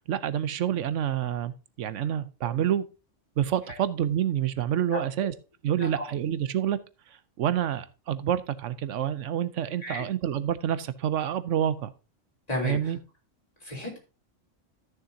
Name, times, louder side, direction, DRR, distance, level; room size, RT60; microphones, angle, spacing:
voice 1, 0.1-2.8 3.4-5.3 5.6-6.8 7.1-11.9 12.6-13.0, right 10 dB, 80° right, 14 dB, 1.0 m, -28 dB
voice 2, 12.5-12.9 13.6-14.0, left 1 dB, 30° left, -2 dB, 3.8 m, -33 dB
14.0 x 6.6 x 2.8 m, 0.31 s
omnidirectional pair, 1.3 m